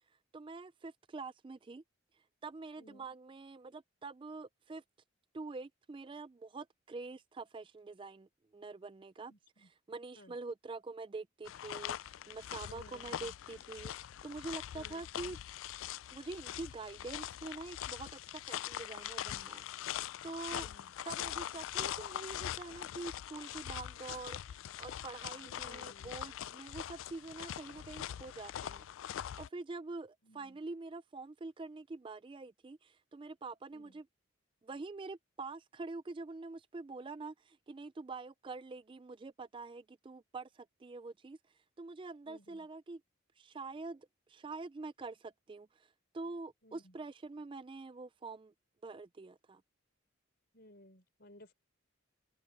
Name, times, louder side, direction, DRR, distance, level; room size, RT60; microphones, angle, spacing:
voice 1, 0.3-1.8 2.4-4.8 5.3-9.3 9.6-15.4 16.1-20.7 21.1-28.8 29.4-34.1 34.6-41.4 41.8-43.0 43.4-48.5 48.8-49.6, right 3 dB, 25° right, 0.3 m, -46 dB
voice 2, 2.8-3.1 9.3-9.7 10.2-10.3 12.6-13.3 14.7-15.3 20.5-20.9 25.4-26.2 30.2-30.6 33.7-34.0 42.2-42.7 46.6-46.9 50.5-51.5, left 1 dB, 50° left, 4.4 m, -59 dB
sound 1, 11.5-29.5, left 11 dB, 70° left, 0.3 m, -42 dB
open air
head